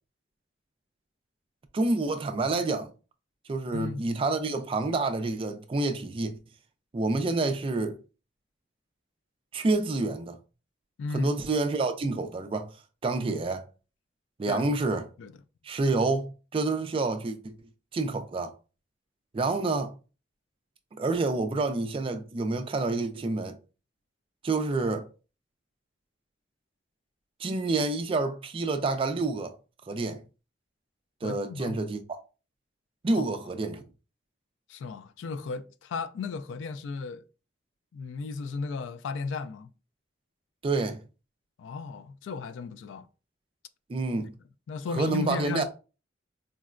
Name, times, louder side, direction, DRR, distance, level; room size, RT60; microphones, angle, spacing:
voice 1, 1.7-2.9 3.5-6.4 6.9-8.0 9.5-10.4 11.1-12.7 13.0-13.6 14.4-15.0 15.6-17.5 17.9-18.5 19.3-19.9 21.0-23.6 24.4-25.1 27.4-29.5 29.9-30.2 31.2-32.2 33.0-33.8 40.6-41.0 43.9-44.3 44.9-45.6, right 3 dB, 30° right, 0.3 m, -28 dB
voice 2, 3.7-4.1 11.0-11.3 14.5-14.9 15.2-15.3 31.2-31.8 33.1-33.2 34.7-37.2 37.9-39.7 41.6-43.1 44.7-45.6, left 4 dB, 85° left, 0.3 m, -35 dB
3.8 x 2.1 x 2.4 m
head